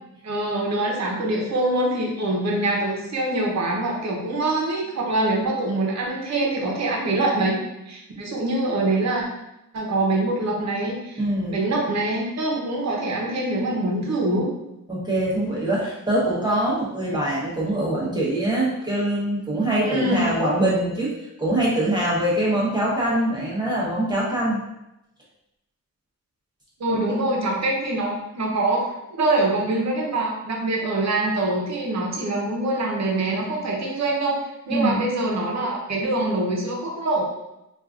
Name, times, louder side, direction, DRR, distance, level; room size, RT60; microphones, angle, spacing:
voice 1, 0.2-9.2 9.7-11.2 11.5-14.5 19.8-20.4 26.8-34.4 34.7-37.2, right 2 dB, 55° right, -1 dB, 0.8 m, -24 dB
voice 2, 11.2-11.6 14.9-21.1 21.4-24.6 26.9-27.0 34.7-35.0, right 1 dB, 15° right, -6 dB, 0.9 m, -23 dB
4.6 x 2.5 x 2.4 m, 0.88 s
wide cardioid pair, 170°, 32 cm